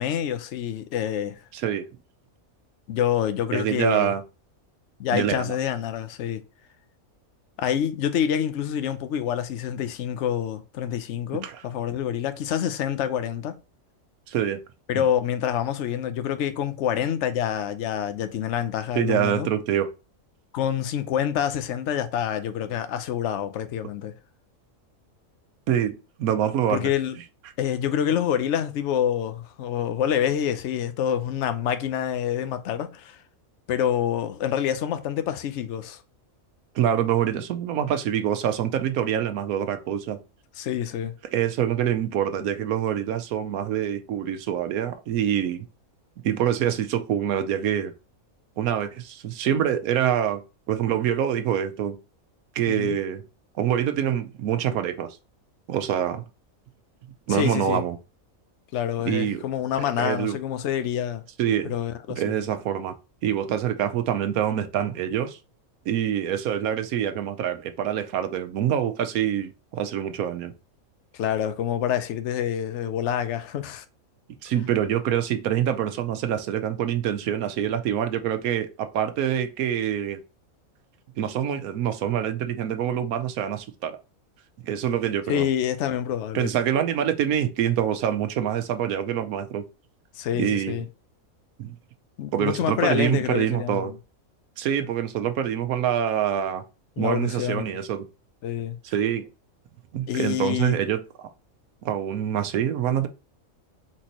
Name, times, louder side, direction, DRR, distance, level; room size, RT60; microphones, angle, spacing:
voice 1, 0.0-1.4 2.9-4.1 5.0-6.4 7.6-13.5 14.9-19.5 20.5-24.1 26.7-27.2 27.6-33.2 33.7-36.0 40.6-41.1 52.7-53.0 57.3-57.8 58.7-61.2 61.6-62.2 71.1-73.8 85.3-86.5 90.1-90.9 92.2-94.0 97.0-97.8 98.4-98.8 100.1-100.8, left 9 dB, 60° left, 0.9 m, -27 dB
voice 2, 1.5-1.8 3.5-4.2 5.1-5.6 11.4-11.6 14.3-14.6 14.9-15.0 18.9-19.9 25.7-26.9 36.7-40.2 41.3-45.7 46.2-47.9 48.6-50.4 50.7-52.0 52.5-53.2 53.6-55.1 55.7-56.2 57.3-58.0 59.1-59.4 60.0-60.4 61.4-61.7 62.1-62.9 63.2-65.4 65.9-70.5 74.4-80.2 81.2-84.0 84.6-85.4 86.3-89.6 90.3-90.8 91.6-91.7 92.3-93.9 94.6-96.6 97.0-98.0 98.8-99.2 99.9-101.3 101.8-103.1, right 9 dB, 85° right, 1.1 m, -25 dB
4.3 x 4.1 x 2.9 m
omnidirectional pair, 1.5 m